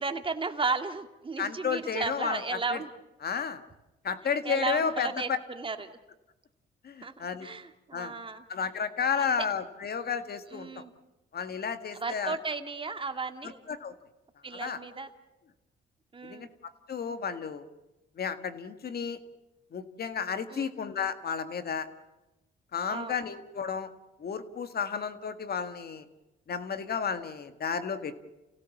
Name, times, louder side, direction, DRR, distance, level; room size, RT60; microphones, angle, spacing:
voice 1, 0.0-2.9 4.4-5.3 5.6-5.9 7.0-8.4 9.2-9.3 10.5-10.9 11.9-13.6 14.4-15.1 16.1-16.5 20.5-20.7 22.9-23.1, right 4 dB, 25° right, 7 dB, 2.2 m, -34 dB
voice 2, 1.4-2.8 3.2-3.6 4.0-5.4 6.8-7.5 7.9-8.1 8.5-10.8 11.3-12.4 13.4-13.9 14.5-14.8 16.2-16.5 16.9-17.6 18.2-19.2 19.7-21.9 22.7-23.9 24.2-26.1 26.5-28.2, left 6 dB, 50° left, 10 dB, 1.8 m, -32 dB
29.5 x 16.5 x 7.2 m, 1.0 s
cardioid pair, 90°, 20 cm